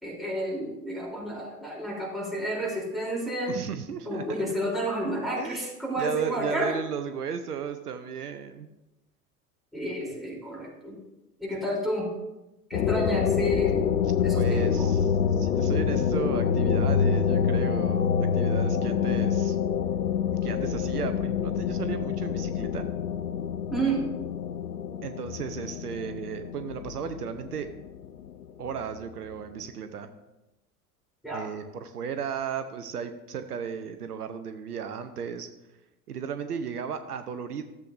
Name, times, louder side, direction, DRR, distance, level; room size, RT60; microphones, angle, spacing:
voice 1, 0.0-3.5 4.0-6.7 9.7-11.0 11.4-12.1 12.7-13.9 14.2-14.9 23.7-24.1 31.2-31.5, equal, ahead, -5 dB, 3.2 m, -30 dB
voice 2, 3.5-4.6 5.4-8.7 14.3-19.6 20.4-22.9 25.0-27.7 28.6-30.1 31.3-35.5 36.1-37.6, right 7 dB, 80° right, 9 dB, 0.7 m, -35 dB
sound 1, 12.7-29.0, left 7 dB, 80° left, 0.6 m, -26 dB
13.5 x 7.6 x 2.6 m, 0.97 s
figure-of-eight pair, 80°, 46 cm